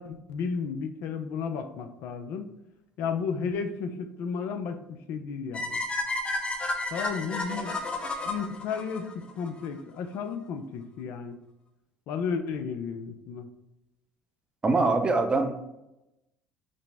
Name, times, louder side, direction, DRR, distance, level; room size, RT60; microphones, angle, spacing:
voice 1, 0.0-2.5 3.0-4.8 5.1-5.8 6.9-7.8 8.2-11.4 12.1-13.5, left 5 dB, 65° left, 7 dB, 0.4 m, -33 dB
sound 1, 5.5-9.7, left 2 dB, 25° left, 0.6 m, -32 dB
voice 2, 14.6-15.6, right 3 dB, 25° right, 5 dB, 0.6 m, -23 dB
5.0 x 2.0 x 3.4 m, 0.89 s
hypercardioid pair, 75°, 4 cm